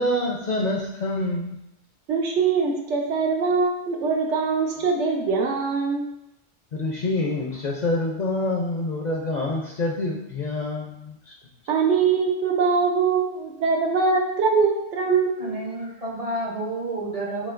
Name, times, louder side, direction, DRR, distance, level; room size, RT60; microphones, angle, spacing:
voice 1, 0.0-1.6 6.7-11.3, left 2 dB, 55° left, -1 dB, 0.5 m, -26 dB
voice 2, 2.1-6.0 11.7-15.6, right 5 dB, 85° right, 1 dB, 1.0 m, -22 dB
voice 3, 15.4-17.5, right 2 dB, 40° right, -3 dB, 0.6 m, -30 dB
7.0 x 2.8 x 2.5 m, 0.85 s
omnidirectional pair, 1.2 m